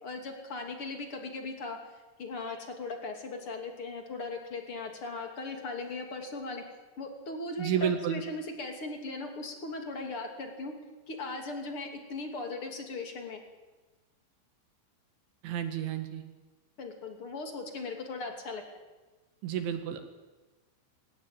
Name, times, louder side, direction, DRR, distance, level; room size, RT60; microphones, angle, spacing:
voice 1, 0.0-1.8 2.2-6.6 7.0-10.7 11.1-13.4 16.8-18.6, left 3 dB, 35° left, 4 dB, 2.7 m, -38 dB
voice 2, 7.6-8.2 15.4-16.2 19.4-20.0, right 9 dB, 70° right, 7 dB, 4.0 m, -31 dB
21.5 x 19.5 x 9.1 m, 1.2 s
omnidirectional pair, 5.9 m